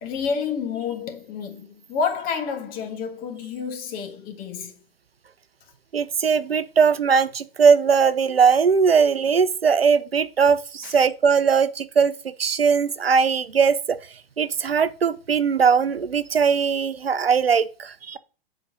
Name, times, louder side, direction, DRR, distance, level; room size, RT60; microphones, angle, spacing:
voice 1, 0.0-4.7 10.8-11.0, left 6 dB, 30° left, 1.5 m, -29 dB
voice 2, 5.9-12.1 12.4-14.0 14.4-18.2, right 6 dB, 80° right, 0.6 m, -20 dB
10.0 x 4.2 x 4.0 m
figure-of-eight pair, 100°, 29 cm